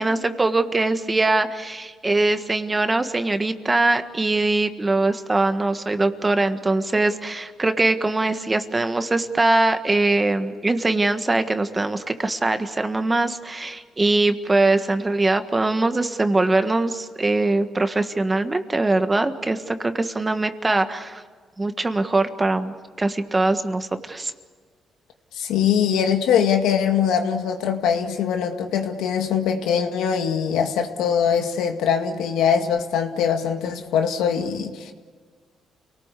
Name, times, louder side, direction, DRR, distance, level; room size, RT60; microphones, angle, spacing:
voice 1, 0.0-21.2 21.6-24.3, right 2 dB, 20° right, 8 dB, 1.6 m, -22 dB
voice 2, 25.4-34.9, left 7 dB, 90° left, 5 dB, 2.1 m, -22 dB
29.0 x 19.0 x 8.4 m, 1.5 s
cardioid pair, 90°, 0 cm